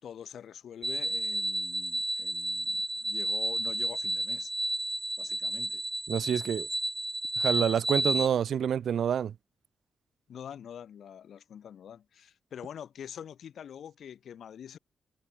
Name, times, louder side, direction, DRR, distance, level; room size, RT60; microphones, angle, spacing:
voice 1, 0.0-4.5 5.2-5.8 10.3-14.8, left 8 dB, 75° left, 5.2 m, -45 dB
sound 1, 0.8-8.3, right 1 dB, 10° right, 0.8 m, -31 dB
voice 2, 6.1-6.7 7.4-9.3, right 8 dB, 75° right, 0.3 m, -27 dB
wide cardioid pair, 160°, 0 cm